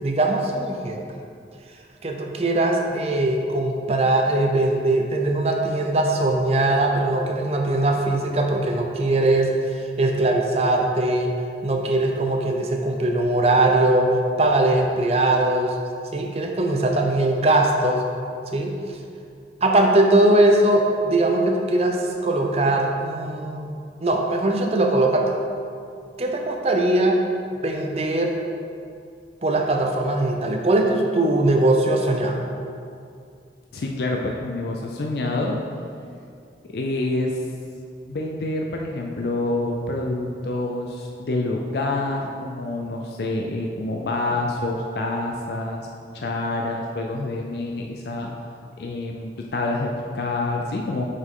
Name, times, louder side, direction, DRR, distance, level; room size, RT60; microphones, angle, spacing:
voice 1, 0.0-1.0 2.0-9.5 10.0-11.3 11.6-15.8 16.1-18.0 18.5-18.8 19.6-23.7 24.0-25.3 26.2-27.2 27.6-28.3 29.4-32.4, right 2 dB, 35° right, 2 dB, 0.6 m, -20 dB
voice 2, 33.7-35.5 36.7-37.4 38.1-45.9 46.1-48.3 48.8-51.0, left 2 dB, 65° left, 0 dB, 0.5 m, -27 dB
6.3 x 5.2 x 3.8 m, 2.4 s
head